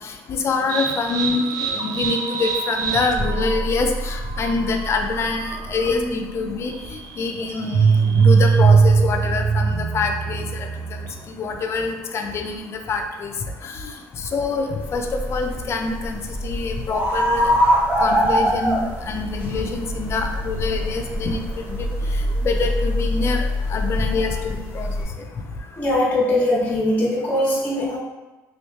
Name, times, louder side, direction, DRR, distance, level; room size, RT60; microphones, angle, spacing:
voice 1, 0.3-6.7 7.2-10.7 11.4-13.3 13.6-13.7 14.3-17.5 18.0-21.9 22.4-23.4 23.7-24.9, left 4 dB, 40° left, 4 dB, 0.5 m, -25 dB
sound 1, 0.7-11.3, right 5 dB, 65° right, 0.4 m, -22 dB
sound 2, 14.8-25.0, equal, 25° right, 0.8 m, -24 dB
voice 2, 25.8-28.0, left 1 dB, 25° left, -6 dB, 0.9 m, -21 dB
3.1 x 3.0 x 3.1 m, 1.1 s
cardioid pair, 115°, 7 cm